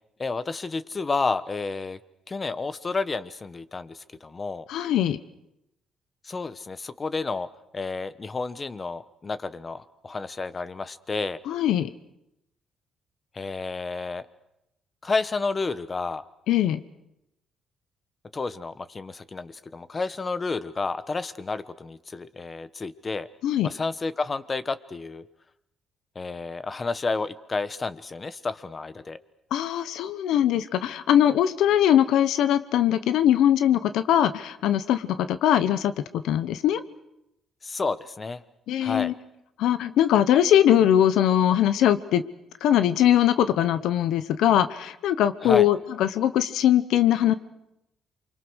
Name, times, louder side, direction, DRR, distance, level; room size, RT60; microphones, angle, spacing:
voice 1, 0.2-2.0 2.3-4.7 6.2-7.5 7.7-11.4 13.3-14.3 15.0-16.2 18.3-23.3 23.6-25.2 26.1-29.2 37.6-38.4 38.8-39.1 45.4-45.7, left 3 dB, 30° left, 14 dB, 1.2 m, -30 dB
voice 2, 4.7-5.2 11.5-11.9 16.5-16.8 23.4-23.7 29.5-36.8 38.7-39.1 39.6-42.2 42.6-47.3, left 11 dB, 85° left, 12 dB, 0.9 m, -21 dB
28.5 x 25.0 x 6.4 m, 0.85 s
cardioid pair, 90°, 0 cm